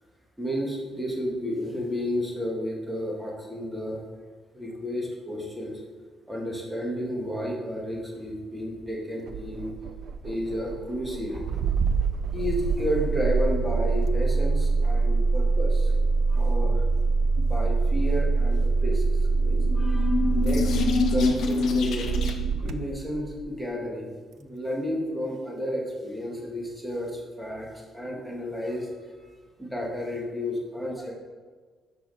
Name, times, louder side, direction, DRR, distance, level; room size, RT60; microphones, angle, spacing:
voice 1, 0.4-4.0 4.5-5.8 6.3-9.7 10.2-11.6 12.3-15.9 16.3-16.9 17.4-19.0 19.4-20.8 21.1-22.1 22.6-24.1 24.4-29.3 29.6-31.1, equal, 5° right, -3 dB, 1.8 m, -32 dB
Engine starting, 9.3-23.4, right 4 dB, 70° right, 0.4 m, -25 dB
sound 1, 19.4-22.6, left 4 dB, 75° left, 0.8 m, -26 dB
6.0 x 5.7 x 4.2 m, 1.5 s
cardioid pair, 90°, 0 cm